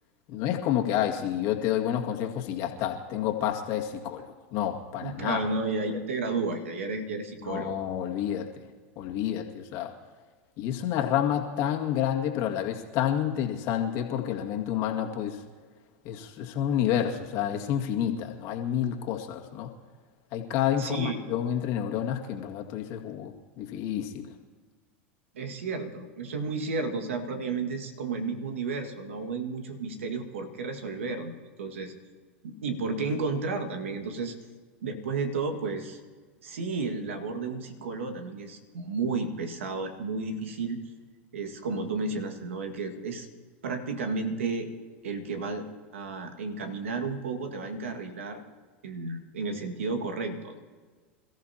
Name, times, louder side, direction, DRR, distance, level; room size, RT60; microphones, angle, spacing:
voice 1, 0.3-4.2 4.5-5.4 7.4-8.5 9.0-9.9 10.6-15.4 16.0-19.7 20.3-24.3, left 10 dB, 50° left, 2 dB, 2.1 m, -29 dB
voice 2, 5.0-7.8 20.8-21.2 25.3-31.3 31.6-31.9 32.4-34.3 34.8-36.0 36.4-40.8 41.3-43.3 43.6-44.7 45.0-45.7 45.9-48.4 48.8-50.6, right 4 dB, 85° right, 6 dB, 1.9 m, -32 dB
27.5 x 14.5 x 2.9 m, 1.5 s
hypercardioid pair, 100°, 7 cm